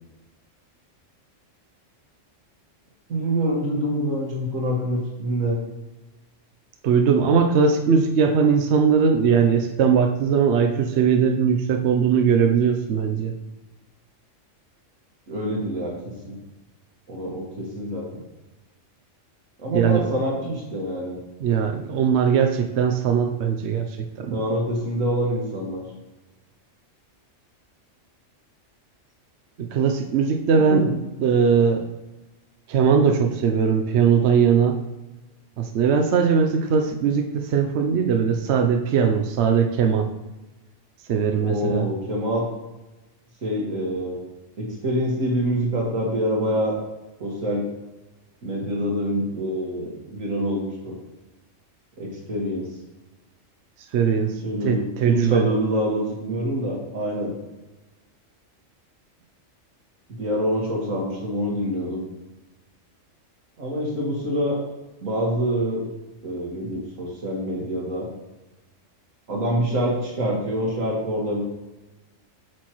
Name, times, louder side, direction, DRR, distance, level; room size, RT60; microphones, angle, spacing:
voice 1, 3.1-5.6 15.3-15.9 16.2-16.3 17.1-18.0 19.6-21.2 24.3-25.8 30.7-30.9 41.4-42.5 43.4-44.2 44.6-46.7 47.2-47.7 48.4-51.0 52.0-52.7 54.1-57.3 60.2-62.0 63.6-64.6 65.0-65.8 66.2-68.1 69.3-71.4, equal, 90° right, -2 dB, 2.2 m, -26 dB
voice 2, 6.8-13.3 19.7-20.1 21.4-24.4 29.6-31.9 32.7-34.8 35.6-40.1 41.1-41.9 53.9-55.5, right 6 dB, 65° right, 4 dB, 0.9 m, -20 dB
8.4 x 6.3 x 3.1 m, 1.1 s
omnidirectional pair, 1.3 m